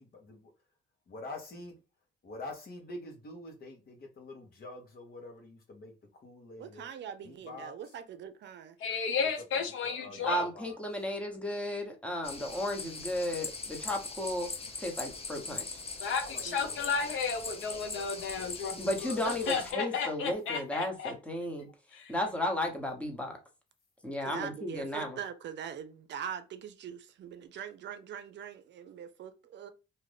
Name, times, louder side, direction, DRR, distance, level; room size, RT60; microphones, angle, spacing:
voice 1, 1.1-1.7 2.2-6.9 7.2-7.7 9.8-10.8 16.2-17.1 17.4-18.8, left 2 dB, 50° left, 1.2 m, -46 dB
voice 2, 6.6-8.8 16.4-17.2 24.2-29.7, right 8 dB, 65° right, 0.5 m, -43 dB
voice 3, 8.8-10.5 16.0-18.8 19.0-21.1 21.9-22.1, left 5 dB, 80° left, 0.8 m, -33 dB
voice 4, 10.2-14.5 14.8-15.8 18.8-21.7 22.1-23.4 24.0-25.2, left 1 dB, 5° left, 1.0 m, -34 dB
sound 1, 12.2-19.7, left 4 dB, 30° left, 0.7 m, -41 dB
2.7 x 2.5 x 3.3 m
cardioid pair, 90°, 20 cm